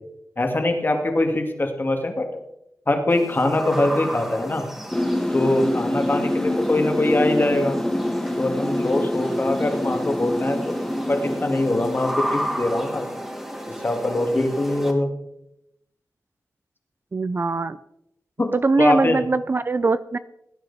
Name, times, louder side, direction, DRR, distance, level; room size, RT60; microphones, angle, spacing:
voice 1, 0.4-2.4 2.9-4.7 5.3-7.8 8.4-10.8 11.1-13.1 13.8-15.1 18.4-19.2, left 2 dB, 35° left, 4 dB, 2.2 m, -23 dB
sound 1, 3.1-14.9, equal, 5° right, 2.6 m, -33 dB
sound 2, 4.9-13.8, left 1 dB, 10° left, 0.8 m, -26 dB
voice 2, 17.1-17.8 18.5-20.2, right 3 dB, 35° right, 14 dB, 0.4 m, -21 dB
18.5 x 9.8 x 4.2 m, 0.83 s
wide cardioid pair, 90°, 6 cm